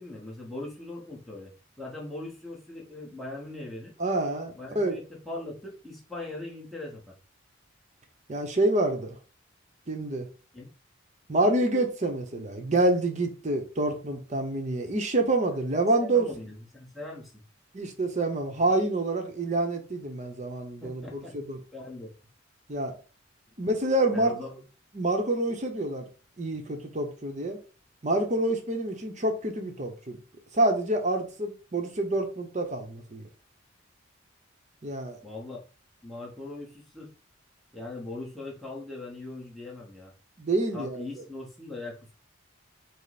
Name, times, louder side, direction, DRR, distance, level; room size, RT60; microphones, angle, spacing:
voice 1, 0.0-1.5 1.8-3.9 4.5-7.1 10.5-10.7 16.0-17.4 20.8-21.4 21.7-22.1 24.1-24.6 35.2-35.6 36.0-37.1 37.7-40.1 40.7-42.1, left 2 dB, ahead, 1.0 m, -40 dB
voice 2, 4.0-5.0 8.3-9.2 9.9-10.3 11.3-16.3 17.7-21.6 22.7-22.9 23.6-24.3 24.9-26.0 26.4-27.6 28.0-30.2 30.5-33.3 34.8-35.2 40.4-41.1, right 2 dB, 35° right, 0.8 m, -27 dB
5.3 x 2.1 x 4.1 m
head